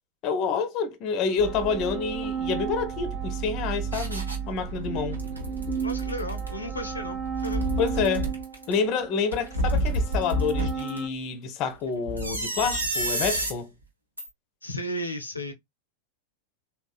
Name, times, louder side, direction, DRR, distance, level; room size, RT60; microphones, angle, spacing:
voice 1, 0.2-5.2 7.8-8.3 8.7-13.7, left 5 dB, 40° left, 0.6 m, -28 dB
sound 1, 1.2-11.1, right 7 dB, 5° right, 0.6 m, -35 dB
sound 2, 1.4-8.1, right 6 dB, 55° right, 0.6 m, -36 dB
sound 3, 3.9-4.4 4.8-6.5 7.3-8.7 9.3-11.0 12.1-13.5 14.2-14.3, equal, 80° right, 0.9 m, -29 dB
voice 2, 5.8-7.7 14.6-15.5, equal, 80° left, 0.6 m, -34 dB
3.5 x 2.3 x 2.3 m
figure-of-eight pair, 90°, 0 cm